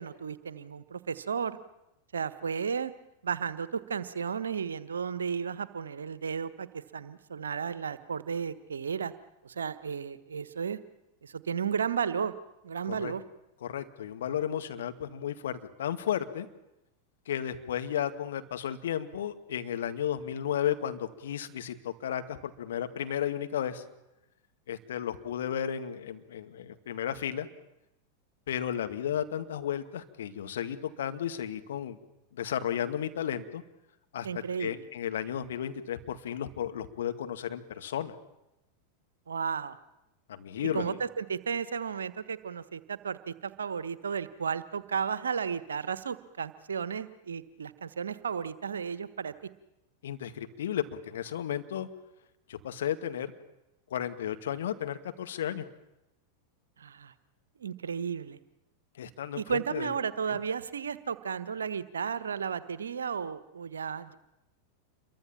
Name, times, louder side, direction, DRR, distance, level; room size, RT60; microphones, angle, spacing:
voice 1, 0.0-1.6 2.1-2.9 3.2-9.1 9.4-10.8 11.2-12.3 12.6-13.2 34.2-34.8 39.3-39.7 40.7-49.3 56.8-57.1 57.6-58.4 59.3-64.2, right 6 dB, 70° right, 15 dB, 1.3 m, -33 dB
voice 2, 13.6-16.5 17.3-23.8 24.7-27.5 28.5-32.0 32.3-33.6 34.1-34.3 34.6-38.1 40.3-41.0 50.0-51.9 52.5-53.3 53.9-55.7 59.0-59.9 60.3-60.4, left 10 dB, 60° left, 7 dB, 2.1 m, -33 dB
28.0 x 23.0 x 7.3 m, 0.91 s
figure-of-eight pair, 90°, 0 cm